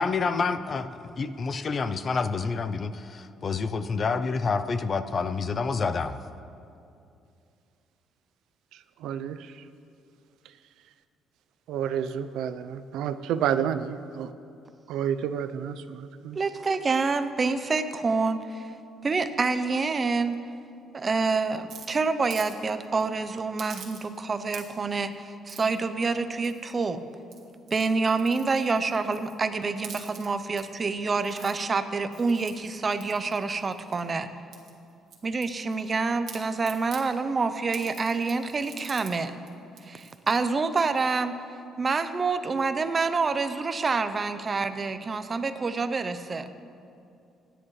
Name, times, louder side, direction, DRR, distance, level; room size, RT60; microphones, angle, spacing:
voice 1, 0.0-6.2, left 4 dB, 30° left, 11 dB, 0.4 m, -28 dB
voice 2, 8.7-9.6 11.7-14.3 14.9-16.4, right 9 dB, 80° right, 12 dB, 0.5 m, -30 dB
voice 3, 16.4-18.7 19.0-20.4 20.9-27.0 27.7-34.3 35.2-39.3 39.8-41.3 41.8-46.5, right 4 dB, 25° right, 10 dB, 0.6 m, -27 dB
sound 1, 21.7-22.6 22.8-23.0 23.6-24.2 24.5-24.9 25.5-25.8 26.4-26.8 27.2-29.4 29.7-30.6 31.1-31.5 32.1-34.1 34.5-36.0 36.3-37.1 37.7-39.1 39.5-39.6 39.8-40.4, right 6 dB, 60° right, 1.9 m, -46 dB
26.0 x 10.0 x 3.2 m, 2.6 s
cardioid pair, 165°, 0 cm